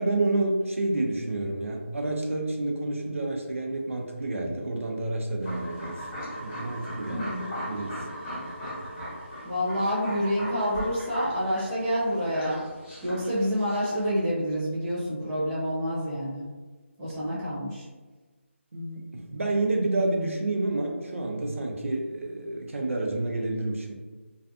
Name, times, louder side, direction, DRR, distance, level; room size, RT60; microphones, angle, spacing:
voice 1, 0.0-6.0 6.4-7.3 7.6-8.0 18.7-23.9, right 2 dB, 75° right, 1 dB, 0.5 m, -29 dB
sound 1, 5.4-14.1, equal, 20° left, 0.9 m, -38 dB
voice 2, 7.1-7.5 9.4-12.6 13.0-16.5 17.0-17.9, equal, 10° right, -10 dB, 0.4 m, -28 dB
2.4 x 2.4 x 2.4 m, 1.3 s
figure-of-eight pair, 165°, 7 cm